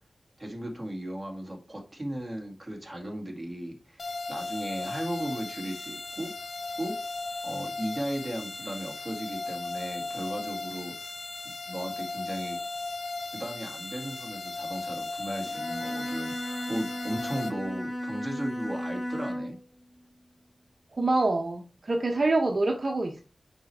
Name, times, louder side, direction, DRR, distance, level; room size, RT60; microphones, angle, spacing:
voice 1, 0.4-6.3 6.8-6.9 7.4-11.1 11.7-12.6 13.3-19.6, right 1 dB, 15° right, 2.1 m, -36 dB
sound 1, 4.0-17.5, left 3 dB, 70° left, 0.7 m, -36 dB
Bowed string instrument, 15.5-19.6, equal, 20° left, 1.1 m, -35 dB
voice 2, 21.0-23.2, right 2 dB, 50° right, 0.8 m, -26 dB
6.3 x 4.9 x 3.3 m
wide cardioid pair, 100°, 0 cm